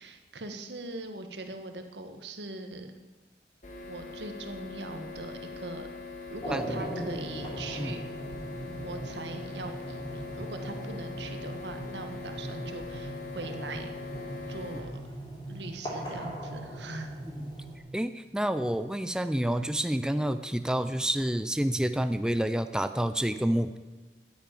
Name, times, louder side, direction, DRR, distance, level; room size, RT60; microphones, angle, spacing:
voice 1, 0.0-3.0 3.9-5.9 6.3-8.0 8.8-13.9 14.5-15.0 15.5-17.2, right 2 dB, 85° right, 6 dB, 1.5 m, -41 dB
sound 1, 3.6-14.8, left 4 dB, 45° left, 2.8 m, -42 dB
sound 2, 6.4-17.8, right 1 dB, 25° left, 3.2 m, -39 dB
voice 2, 6.5-6.9 7.8-7.9 17.2-17.5 17.9-23.8, right 1 dB, 5° right, 10 dB, 0.4 m, -29 dB
10.0 x 10.0 x 9.0 m, 1.2 s
head